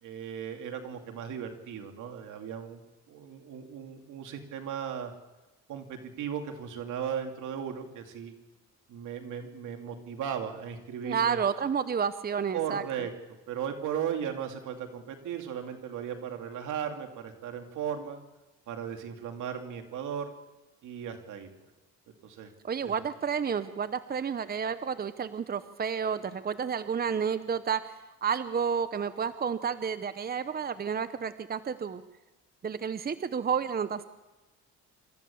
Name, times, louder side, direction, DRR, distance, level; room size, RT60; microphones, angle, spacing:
voice 1, 0.0-2.8 3.1-5.1 5.7-8.3 8.9-11.4 12.5-13.1 13.5-18.2 18.7-20.3 20.8-21.5 22.2-22.5 22.8-22.9, right 8 dB, 80° right, 4 dB, 2.6 m, -36 dB
voice 2, 11.0-12.8 22.6-27.9 28.2-32.0 32.6-34.0, right 7 dB, 30° right, 13 dB, 0.8 m, -30 dB
26.5 x 14.0 x 7.1 m, 1.1 s
cardioid pair, 90°, 30 cm